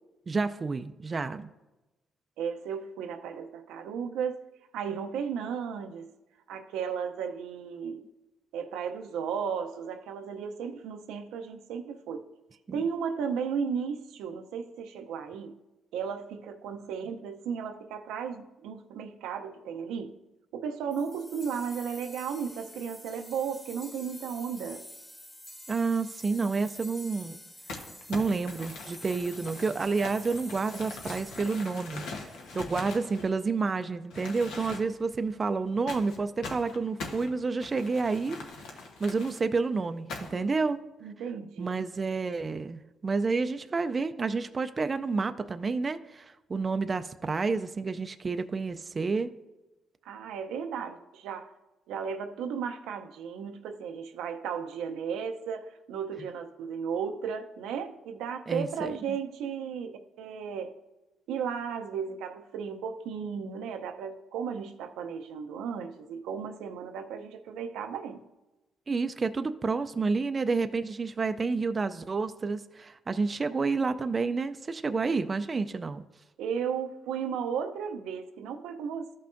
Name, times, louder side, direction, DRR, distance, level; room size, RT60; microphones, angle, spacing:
voice 1, 0.3-1.5 12.7-12.8 25.7-27.4 28.1-32.0 32.5-38.4 39.0-40.8 41.6-49.3 58.5-59.0 68.9-76.0, right 4 dB, 35° right, 9 dB, 0.4 m, -29 dB
voice 2, 2.4-4.4 4.7-6.1 6.5-8.0 8.5-12.3 12.7-15.5 15.9-20.1 20.5-24.8 41.0-41.8 50.0-51.5 51.9-60.7 61.3-68.2 76.4-79.2, right 7 dB, 90° right, 6 dB, 0.6 m, -35 dB
sound 1, 20.9-32.9, left 1 dB, 15° left, 1.0 m, -48 dB
Crumpling crinkling, 27.7-33.7 34.1-35.1 35.9-39.4 40.1-40.5, left 3 dB, 85° left, 1.1 m, -42 dB
13.5 x 5.6 x 2.6 m, 1.0 s
cardioid pair, 90°, 0 cm